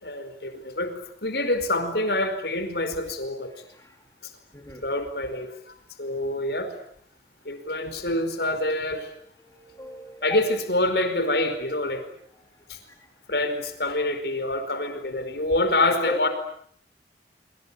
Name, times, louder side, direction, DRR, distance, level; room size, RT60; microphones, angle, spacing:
voice 1, 0.0-3.5 4.8-6.7 7.4-9.1 10.2-12.0 12.7-12.8 13.3-16.3, left 2 dB, 65° left, 9 dB, 4.9 m, -26 dB
voice 2, 3.5-4.0 4.5-4.8 9.4-10.4 13.0-13.1 16.1-16.2, left 1 dB, 15° left, 4 dB, 3.5 m, -36 dB
26.0 x 26.0 x 8.7 m, 0.64 s
head